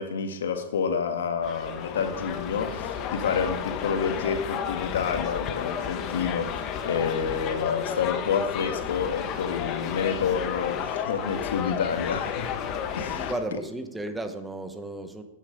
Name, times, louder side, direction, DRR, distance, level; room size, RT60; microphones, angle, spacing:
voice 1, 0.0-12.5 12.9-13.3, left 6 dB, 90° left, 1.6 m, -29 dB
sound 1, 1.4-13.3, left 8 dB, 35° left, 1.2 m, -32 dB
voice 2, 13.3-15.2, right 1 dB, 5° right, 1.0 m, -33 dB
10.5 x 9.4 x 5.1 m
supercardioid pair, 145°, 0 cm